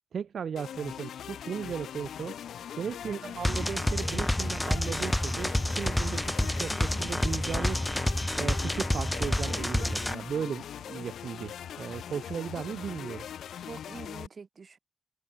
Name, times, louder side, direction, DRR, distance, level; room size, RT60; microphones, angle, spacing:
voice 1, 0.1-2.4 2.7-13.3, right 7 dB, 75° right, 0.8 m, -36 dB
sound 1, 0.6-14.3, left 9 dB, 85° left, 4.4 m, -41 dB
voice 2, 3.0-3.4 13.7-14.8, right 5 dB, 55° right, 6.3 m, -45 dB
sound 2, 3.4-10.1, left 1 dB, 10° left, 0.9 m, -29 dB
supercardioid pair, 45°, 0 cm